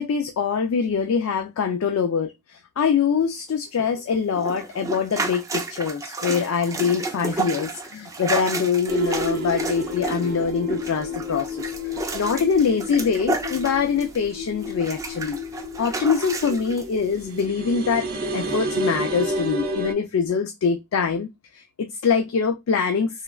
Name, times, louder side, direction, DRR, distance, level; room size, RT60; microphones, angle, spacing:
voice 1, 0.0-11.7 12.1-15.4 15.8-18.1 18.3-21.3 21.5-23.2, left 6 dB, 80° left, 0.4 m, -24 dB
sound 1, 4.3-14.3 14.6-16.8 17.4-17.5, right 3 dB, 15° right, 0.4 m, -31 dB
sound 2, 8.9-19.9, equal, 45° right, 0.7 m, -31 dB
3.2 x 2.3 x 2.3 m
head